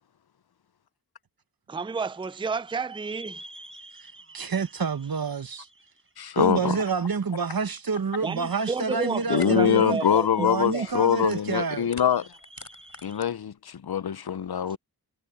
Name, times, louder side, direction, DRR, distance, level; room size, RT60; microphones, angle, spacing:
voice 1, 1.7-3.4 8.2-10.5 10.7-10.9, right 4 dB, 15° right, 0.4 m, -31 dB
sound 1, 1.9-13.2, right 2 dB, 30° right, 4.7 m, -51 dB
voice 2, 4.3-5.7 6.4-10.0 10.4-11.9, right 5 dB, 60° right, 1.0 m, -28 dB
voice 3, 6.2-6.8 9.3-12.3 13.0-14.8, left 9 dB, 65° left, 0.7 m, -24 dB
sound 2, 9.4-9.6 9.8-10.1 10.5-11.5 11.8-13.3, left 2 dB, 40° left, 4.7 m, -47 dB
wide cardioid pair, 70°, 40 cm